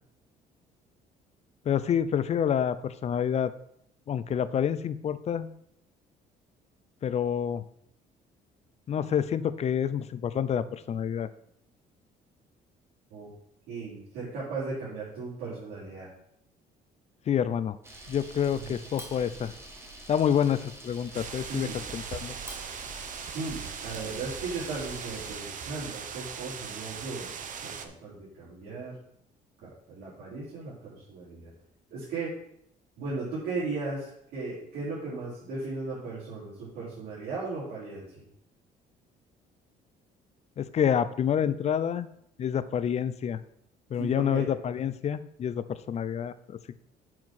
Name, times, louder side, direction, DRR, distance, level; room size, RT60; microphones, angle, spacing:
voice 1, 1.7-3.5 4.1-5.5 7.0-7.6 8.9-11.3 17.3-17.8 18.1-19.5 20.1-22.3 40.6-42.1 42.4-43.4 43.9-46.6, left 8 dB, 40° left, 15 dB, 0.5 m, -28 dB
voice 2, 13.7-16.1 18.5-18.7 21.4-21.8 23.3-27.3 27.6-29.0 29.6-31.5 31.9-32.3 33.0-38.3 44.0-44.5, right 3 dB, 75° right, -9 dB, 3.8 m, -36 dB
Camera, 17.8-25.4, right 2 dB, 15° right, 1.7 m, -45 dB
sound 1, 21.1-27.9, right 7 dB, 50° right, 0.9 m, -40 dB
7.6 x 4.6 x 6.1 m, 0.74 s
cardioid pair, 110°, 17 cm